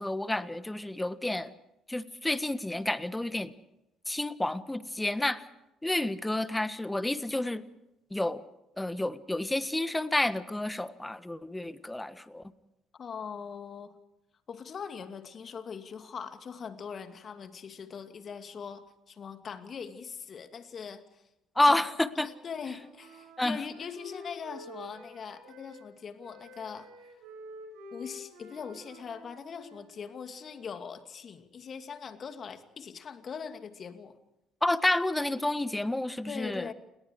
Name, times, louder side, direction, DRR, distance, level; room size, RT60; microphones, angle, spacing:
voice 1, 0.0-1.5 1.9-3.5 4.1-5.4 5.8-7.6 8.1-8.4 8.8-12.4 21.5-22.3 23.4-23.6 34.6-36.7, left 1 dB, 10° left, 14 dB, 1.6 m, -29 dB
voice 2, 13.0-13.9 14.5-21.2 21.7-21.8 22.2-26.9 27.9-34.2 36.3-36.7, left 6 dB, 45° left, 8 dB, 2.5 m, -41 dB
Wind instrument woodwind instrument, 22.1-25.9 26.2-30.7, equal, 70° right, 6.7 m, -50 dB
29.0 x 21.0 x 4.9 m, 0.89 s
figure-of-eight pair, 50°, 0 cm